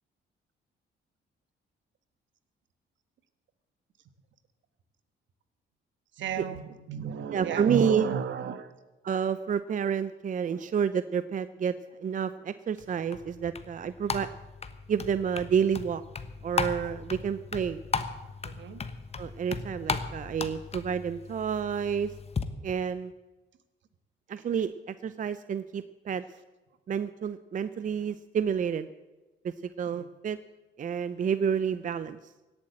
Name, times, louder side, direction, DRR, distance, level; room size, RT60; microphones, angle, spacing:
voice 1, 6.1-8.7 9.0-9.3 9.8-9.9 10.4-10.7 18.4-18.8 29.8-30.1, right 7 dB, 70° right, 11 dB, 1.3 m, -34 dB
voice 2, 7.3-8.1 9.0-11.7 12.0-14.3 14.9-16.0 16.4-17.8 19.2-22.1 22.6-23.1 24.3-24.7 25.0-26.2 26.9-28.9 29.8-30.4 30.8-32.2, right 7 dB, 40° right, 14 dB, 0.5 m, -29 dB
sound 1, 12.8-22.4, left 5 dB, 30° left, 1.1 m, -36 dB
17.0 x 8.7 x 7.9 m, 1.1 s
cardioid pair, 90°, 20 cm